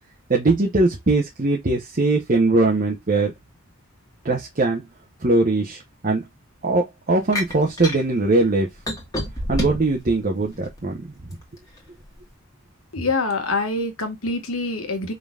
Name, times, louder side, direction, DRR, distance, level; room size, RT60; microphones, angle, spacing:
voice 1, 0.3-3.3 4.2-4.8 5.2-6.3 6.6-8.7 9.5-11.1, right 2 dB, 40° right, 0.9 m, -21 dB
sound 1, 7.3-8.0 8.9-10.0 10.5-11.4, equal, 15° left, 1.5 m, -27 dB
voice 2, 12.9-15.1, left 3 dB, 75° left, 1.5 m, -25 dB
5.3 x 3.9 x 2.4 m
head